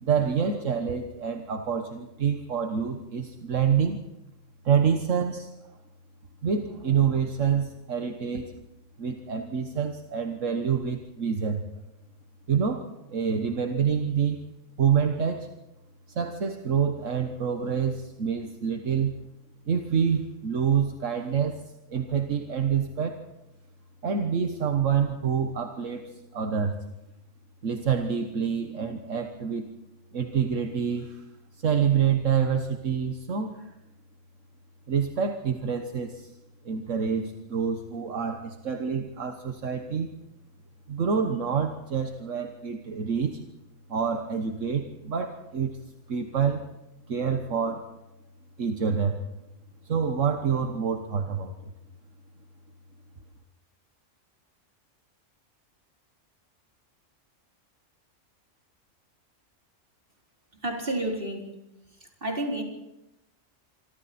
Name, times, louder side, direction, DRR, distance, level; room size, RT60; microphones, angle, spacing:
voice 1, 0.0-4.0 4.6-5.5 6.4-8.5 9.0-11.6 12.5-14.4 14.8-15.5 16.1-19.1 19.7-21.6 21.9-23.2 24.0-26.8 27.6-29.6 30.1-31.2 31.5-33.7 34.9-36.3 36.6-40.1 40.9-43.4 43.9-45.8 46.1-46.6 47.1-47.9 48.6-49.2 49.8-51.5, right 7 dB, 70° right, 5 dB, 1.6 m, -27 dB
voice 2, 60.5-61.5 62.0-62.6, right 1 dB, 45° right, 0 dB, 4.2 m, -31 dB
27.0 x 24.5 x 4.3 m, 0.91 s
omnidirectional pair, 1.3 m